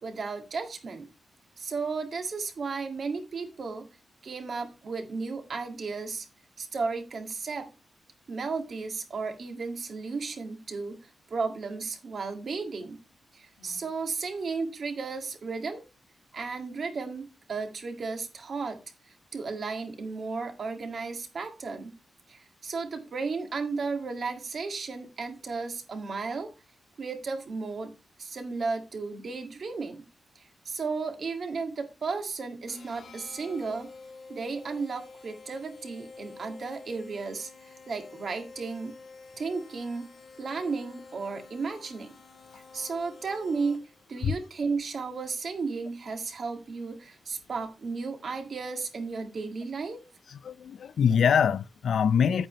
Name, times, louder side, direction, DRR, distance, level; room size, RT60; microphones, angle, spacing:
voice 1, 0.0-1.1 1.6-3.9 4.2-6.3 6.6-7.7 8.3-11.0 11.3-13.0 13.3-15.8 16.3-18.8 19.3-21.9 22.3-26.5 27.0-27.9 28.2-30.1 30.4-33.9 34.3-39.0 39.4-40.1 40.4-42.1 42.5-43.8 44.1-50.0, right 4 dB, 55° right, 1.9 m, -34 dB
sound 1, 32.7-44.1, left 3 dB, 45° left, 2.3 m, -49 dB
voice 2, 50.4-52.5, left 7 dB, 75° left, 0.4 m, -24 dB
9.0 x 8.9 x 3.1 m
wide cardioid pair, 145°, 0 cm